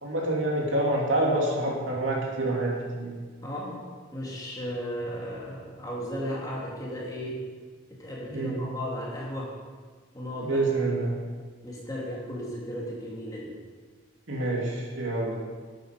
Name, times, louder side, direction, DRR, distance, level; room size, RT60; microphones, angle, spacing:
voice 1, 0.0-3.2 8.3-8.6 10.4-11.2 14.3-15.4, right 2 dB, 75° right, -2 dB, 2.7 m, -27 dB
voice 2, 3.4-3.8 4.1-7.4 7.9-9.5 10.1-10.8 11.6-13.5, equal, 20° left, -5 dB, 2.7 m, -35 dB
11.5 x 9.3 x 5.2 m, 1.5 s
head